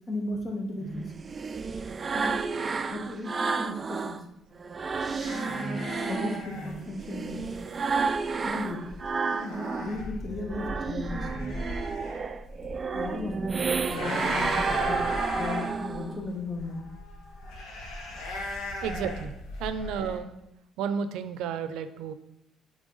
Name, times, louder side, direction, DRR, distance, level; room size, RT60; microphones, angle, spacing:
voice 1, 0.1-1.1 2.1-2.5 2.8-4.2 6.1-7.4 8.4-8.8 9.4-11.3 12.9-13.6 13.9-16.8, left 2 dB, 30° left, 2 dB, 1.2 m, -35 dB
sound 1, 0.8-4.2 4.6-10.0 10.3-16.2, right 4 dB, 30° right, 0.3 m, -31 dB
sound 2, 5.2-20.2, left 2 dB, 85° left, 1.5 m, -38 dB
voice 2, 18.8-19.3 19.6-20.3 20.8-22.1, right 7 dB, 90° right, 11 dB, 0.5 m, -32 dB
8.9 x 3.4 x 3.9 m, 0.88 s
cardioid pair, 110°, 0 cm